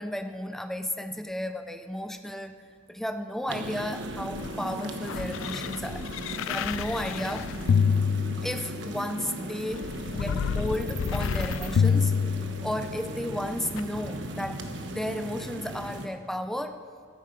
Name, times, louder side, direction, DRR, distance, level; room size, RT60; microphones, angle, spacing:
voice 1, 0.0-2.6 2.9-6.0 6.5-7.6 8.4-12.1 12.6-16.8, left 1 dB, ahead, 8 dB, 0.5 m, -33 dB
sound 1, 3.5-16.1, right 1 dB, 65° right, 1.2 m, -37 dB
sound 2, 4.0-9.0 9.7-13.0 13.8-13.9, left 6 dB, 85° left, 0.3 m, -28 dB
15.0 x 13.5 x 5.2 m, 2.1 s
head